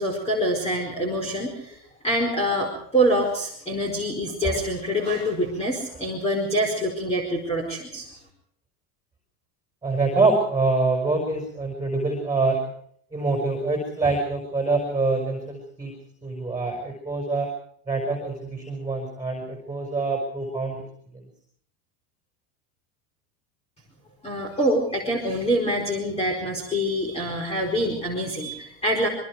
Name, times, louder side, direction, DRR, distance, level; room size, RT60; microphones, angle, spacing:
voice 1, 0.0-1.8 2.0-8.1 24.2-29.1, equal, 10° left, 0 dB, 4.6 m, -25 dB
voice 2, 9.8-12.6 13.1-15.9 16.2-17.5 17.9-20.8 21.1-21.2, right 3 dB, 5° right, 2 dB, 5.2 m, -25 dB
26.5 x 23.5 x 4.8 m, 0.64 s
supercardioid pair, 155°, 48 cm